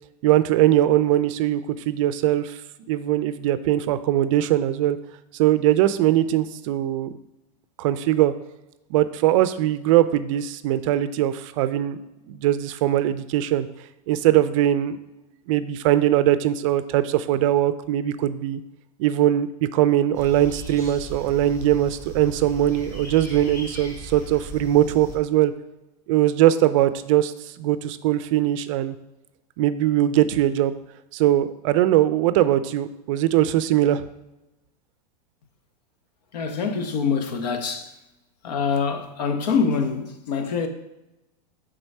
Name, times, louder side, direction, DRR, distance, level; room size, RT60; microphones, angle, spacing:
voice 1, 0.2-1.6 1.9-2.6 2.9-5.0 5.4-7.1 7.8-8.3 8.9-12.0 12.3-13.7 14.1-15.0 15.5-18.6 19.0-25.5 26.1-27.3 27.6-28.9 29.6-30.7 31.1-34.0, right 13 dB, 50° right, 0.4 m, -21 dB
sound 1, 20.1-25.2, equal, 15° left, 2.0 m, -38 dB
voice 2, 36.3-37.9 38.4-40.7, left 5 dB, 75° left, 1.0 m, -25 dB
4.6 x 3.8 x 5.4 m
supercardioid pair, 145°, 21 cm